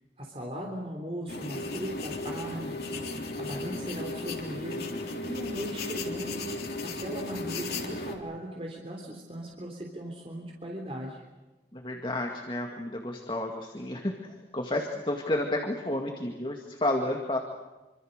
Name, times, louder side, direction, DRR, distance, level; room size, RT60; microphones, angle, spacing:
voice 1, 0.2-3.0 3.4-4.9 5.2-6.4 6.8-11.2, equal, 35° right, 0 dB, 3.5 m, -38 dB
sound 1, 1.3-8.1, left 2 dB, 65° left, 3.8 m, -35 dB
voice 2, 11.7-17.4, left 1 dB, 30° left, 2 dB, 2.1 m, -31 dB
26.5 x 25.5 x 6.7 m, 1.1 s
head